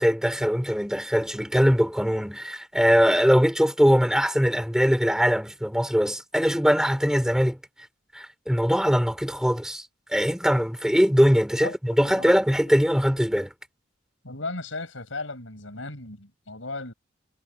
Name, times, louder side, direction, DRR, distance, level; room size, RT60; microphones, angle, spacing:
voice 1, 0.0-7.6 8.1-13.5, equal, 5° right, 5.1 m, -22 dB
voice 2, 11.6-12.4 12.7-12.8 14.2-16.9, left 2 dB, 90° left, 7.1 m, -36 dB
head